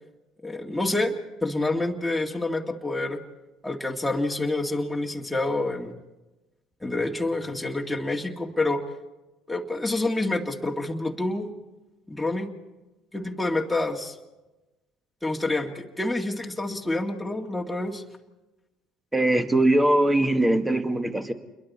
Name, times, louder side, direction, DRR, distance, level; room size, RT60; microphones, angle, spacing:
voice 1, 0.4-1.1 1.4-3.2 3.6-6.0 6.8-8.8 9.5-11.5 12.1-12.5 13.1-14.2 15.2-18.0, left 2 dB, 5° left, -1 dB, 2.2 m, -27 dB
voice 2, 19.1-21.3, right 1 dB, 10° right, 7 dB, 1.9 m, -21 dB
28.0 x 22.0 x 4.3 m, 1.1 s
hypercardioid pair, 70°, 0 cm